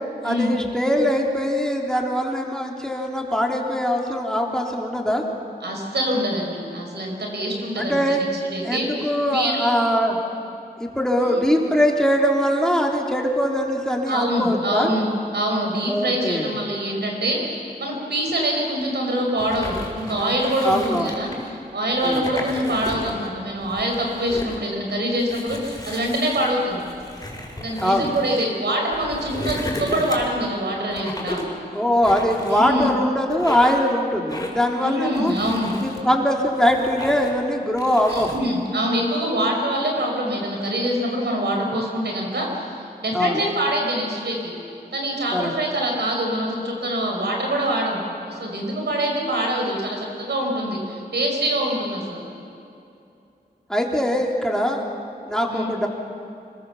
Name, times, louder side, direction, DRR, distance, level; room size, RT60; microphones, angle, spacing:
voice 1, 0.2-5.2 7.8-8.2 8.6-10.2 10.8-14.9 15.9-16.5 20.6-21.1 22.0-22.4 27.8-28.2 31.7-35.3 35.8-38.4 43.1-43.4 45.3-45.5 53.7-54.8 55.3-55.9, equal, 5° left, 0 dB, 3.3 m, -22 dB
voice 2, 5.6-8.3 8.5-9.7 11.2-11.4 14.1-15.0 15.3-21.3 21.7-26.9 27.6-31.4 32.5-32.9 34.8-35.7 38.1-44.5 44.9-52.2 55.5-55.8, right 1 dB, 85° right, 1 dB, 5.1 m, -25 dB
sound 1, 19.4-21.5 21.9-23.3 23.6-24.6 25.2-28.5 28.9-30.4 30.9-31.6 32.0-32.9 33.3-33.9 34.3-34.7 35.1-36.0 36.5-37.4 37.8-38.4, left 1 dB, 20° left, 5.6 m, -34 dB
26.0 x 22.0 x 7.1 m, 2.7 s
wide cardioid pair, 65°, 17 cm